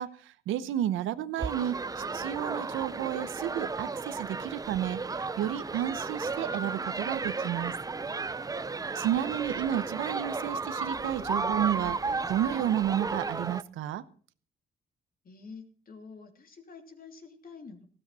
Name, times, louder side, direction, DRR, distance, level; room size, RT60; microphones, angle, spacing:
voice 1, 0.0-7.7 8.9-14.0, right 11 dB, 90° right, 13 dB, 1.0 m, -32 dB
sound 1, 1.4-13.6, right 4 dB, 20° right, 0.6 m, -34 dB
voice 2, 15.2-17.9, left 4 dB, 45° left, 5 dB, 3.1 m, -48 dB
15.5 x 13.0 x 4.3 m, 0.44 s
cardioid pair, 90°, 20 cm